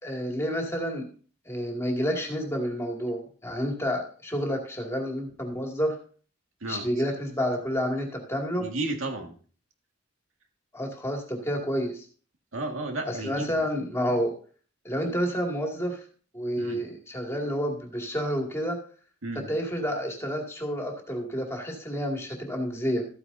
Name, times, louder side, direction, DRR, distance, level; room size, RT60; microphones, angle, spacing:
voice 1, 0.0-1.1 1.5-6.0 6.6-8.7 10.7-12.0 13.0-14.3 14.8-16.0 16.3-18.8 19.3-23.1, equal, 15° left, 1 dB, 2.3 m, -29 dB
voice 2, 8.6-9.3 12.5-13.6 16.6-16.8 19.2-19.5, right 2 dB, 75° right, 3 dB, 1.9 m, -33 dB
14.0 x 9.6 x 2.7 m, 0.43 s
head